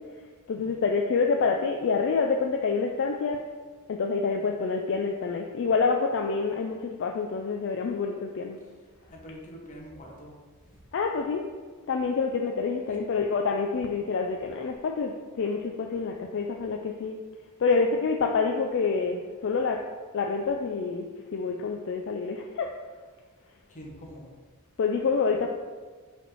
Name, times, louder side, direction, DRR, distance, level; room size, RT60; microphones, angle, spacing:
voice 1, 0.5-3.4 3.9-8.6 10.9-11.4 11.9-17.1 17.6-19.8 20.1-22.7 24.8-25.5, left 4 dB, 55° left, 3 dB, 0.4 m, -27 dB
voice 2, 9.1-10.3 10.6-10.8 12.9-13.0 23.7-24.3, equal, 35° left, -2 dB, 1.1 m, -45 dB
5.1 x 3.4 x 5.4 m, 1.5 s
head